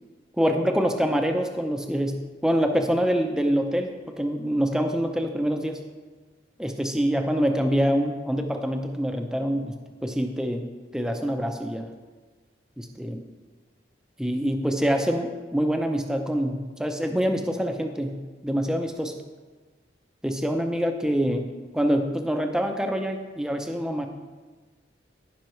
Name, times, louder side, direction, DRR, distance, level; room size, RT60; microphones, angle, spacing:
voice 1, 0.4-3.9 4.2-5.8 6.6-11.9 12.8-13.2 14.2-19.1 20.2-21.5 21.7-24.1, equal, 5° right, 4 dB, 0.6 m, -25 dB
14.5 x 5.4 x 3.2 m, 1.4 s
head